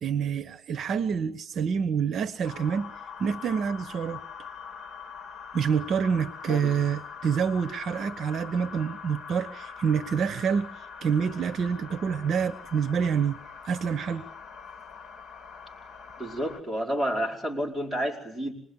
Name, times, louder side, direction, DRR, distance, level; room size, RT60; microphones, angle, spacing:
voice 1, 0.0-2.9 3.2-4.2 5.5-13.4 13.6-14.3, right 6 dB, 55° right, 1.1 m, -27 dB
sound 1, 2.4-16.6, left 6 dB, 45° left, 3.8 m, -43 dB
voice 2, 16.2-18.5, equal, 5° right, 5.2 m, -30 dB
26.5 x 20.5 x 9.7 m
cardioid pair, 140°, 0 cm